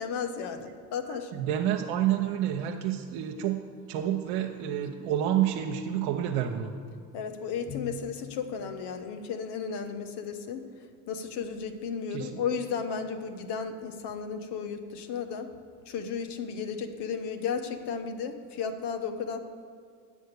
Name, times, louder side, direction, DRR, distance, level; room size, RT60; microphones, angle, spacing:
voice 1, 0.0-1.3 7.1-10.6 11.1-15.5 15.9-19.4, left 6 dB, 60° left, 7 dB, 1.1 m, -34 dB
voice 2, 1.0-3.6 3.9-6.7 12.1-12.4, right 11 dB, 75° right, 1 dB, 0.8 m, -29 dB
8.4 x 6.3 x 8.2 m, 2.2 s
hypercardioid pair, 65°, 46 cm